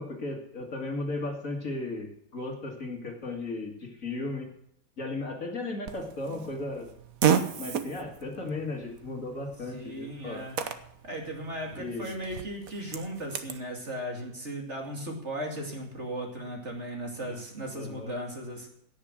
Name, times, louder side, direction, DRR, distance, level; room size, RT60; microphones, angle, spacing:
voice 1, 0.0-4.5 5.0-6.9 7.6-10.4 11.8-12.1 17.2-17.4 17.7-18.1, left 2 dB, 45° left, 1 dB, 2.3 m, -35 dB
Fart, 5.9-13.6, right 8 dB, 55° right, 1.2 m, -33 dB
voice 2, 9.7-10.6 11.0-18.7, right 1 dB, 40° right, 0 dB, 2.8 m, -36 dB
17.0 x 6.2 x 7.4 m, 0.74 s
omnidirectional pair, 2.0 m